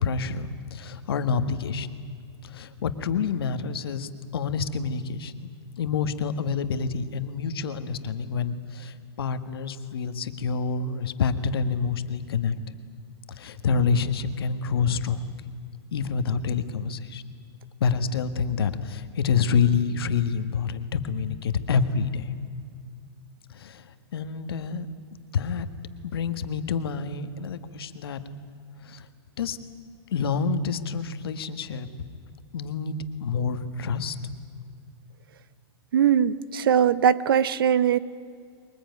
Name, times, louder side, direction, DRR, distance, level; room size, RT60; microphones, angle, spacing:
voice 1, 0.0-1.9 2.4-5.5 5.8-12.6 13.3-15.3 15.9-17.2 17.8-22.3 23.5-23.9 24.1-24.9 25.3-25.7 26.0-28.2 28.8-29.1 29.4-29.6 30.1-31.9 32.5-34.1, left 5 dB, 60° left, 10 dB, 1.6 m, -27 dB
voice 2, 35.9-38.0, right 8 dB, 55° right, 17 dB, 0.8 m, -21 dB
23.0 x 20.5 x 9.5 m, 2.2 s
hypercardioid pair, 180°, 14 cm